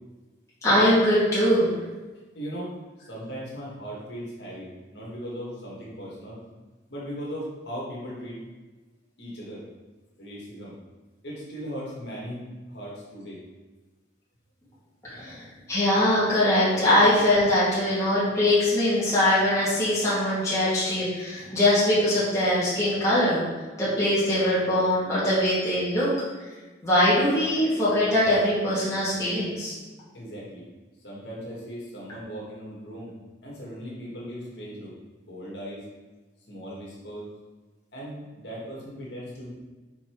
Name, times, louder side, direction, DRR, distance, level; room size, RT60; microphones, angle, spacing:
voice 1, 0.6-1.7 15.0-23.5 23.8-26.1 26.8-29.7, left 1 dB, 15° left, -10 dB, 2.0 m, -22 dB
voice 2, 2.3-6.4 6.9-8.4 9.2-9.7 10.2-10.8 11.2-13.4 30.1-30.6 31.0-33.2 33.4-34.9 35.3-35.9 36.5-37.3 37.9-39.5, equal, 70° left, -5 dB, 1.9 m, -38 dB
5.8 x 4.4 x 4.6 m, 1.3 s
head